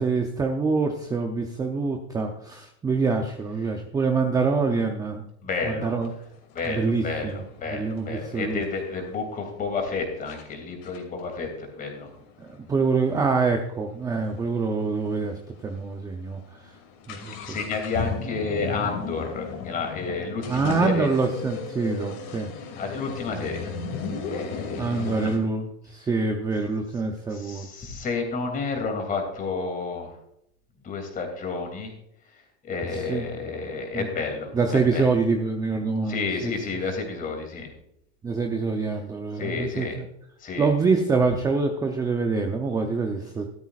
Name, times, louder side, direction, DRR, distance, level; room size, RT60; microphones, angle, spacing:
voice 1, 0.0-5.2 5.6-6.1 6.7-7.4 7.7-8.6 12.4-15.3 15.6-16.8 17.1-17.6 20.5-22.5 24.7-27.7 32.9-33.2 33.9-34.1 34.5-36.5 38.2-40.1 40.6-43.5, right 4 dB, 10° right, 4 dB, 0.6 m, -25 dB
voice 2, 5.4-5.9 6.5-12.1 17.4-21.1 22.8-23.7 24.3-25.3 27.3-30.1 30.8-31.9 32.6-34.5 34.9-35.1 36.1-37.7 39.4-40.0 40.4-40.7, left 4 dB, 25° left, 4 dB, 2.7 m, -31 dB
sound 1, 6.0-6.1 6.6-9.2 9.8-9.9 10.3-10.4 10.8-14.5 14.8-14.9 15.1-15.2 15.8-15.9 16.2-25.4, left 6 dB, 45° left, 2.7 m, -36 dB
13.5 x 12.5 x 2.4 m, 0.75 s
supercardioid pair, 155°, 35 cm